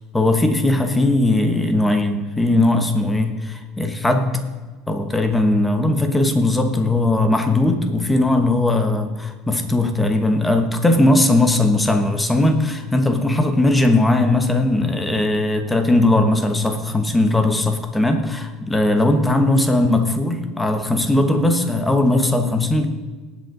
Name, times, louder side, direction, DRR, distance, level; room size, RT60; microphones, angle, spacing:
voice 1, 0.1-4.4 4.9-22.9, left 2 dB, 5° left, 7 dB, 1.0 m, -18 dB
18.5 x 8.0 x 3.8 m, 1.3 s
cardioid pair, 170°, 0 cm